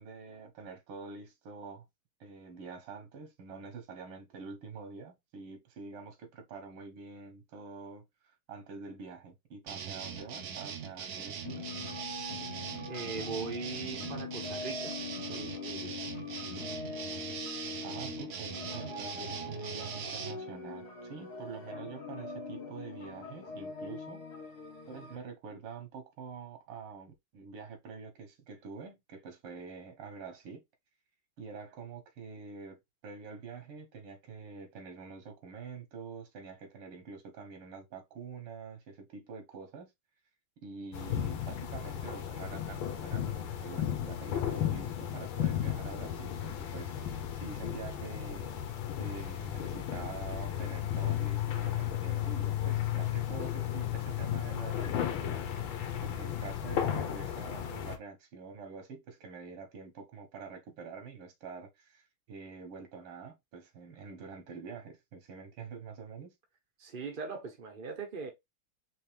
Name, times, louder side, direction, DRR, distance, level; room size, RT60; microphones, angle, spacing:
voice 1, 0.0-1.8 2.2-11.7 17.8-24.2 24.9-30.6 31.4-39.9 40.6-48.5 49.0-66.3, right 5 dB, 90° right, 2.2 m, -46 dB
sound 1, 9.7-20.3, right 7 dB, 55° right, 1.1 m, -41 dB
sound 2, 11.4-25.2, left 4 dB, 55° left, 1.5 m, -42 dB
voice 2, 12.9-14.9 15.3-16.0 66.8-68.3, right 5 dB, 75° right, 0.4 m, -40 dB
sound 3, 40.9-58.0, left 10 dB, 70° left, 1.6 m, -34 dB
4.7 x 3.0 x 3.3 m
omnidirectional pair, 2.3 m